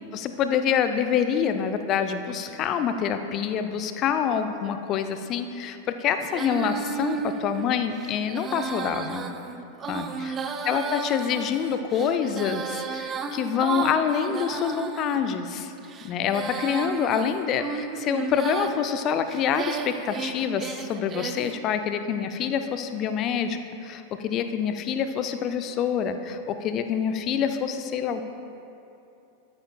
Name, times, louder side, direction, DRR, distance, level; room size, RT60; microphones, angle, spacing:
voice 1, 0.1-9.3 9.9-10.4 10.6-15.7 16.0-28.3, left 7 dB, 35° left, 8 dB, 0.5 m, -26 dB
Female singing, 6.3-15.2 15.8-18.8 19.3-21.6, right 6 dB, 25° right, 0.5 m, -33 dB
13.0 x 9.5 x 2.3 m, 2.7 s
figure-of-eight pair, 90°, 0 cm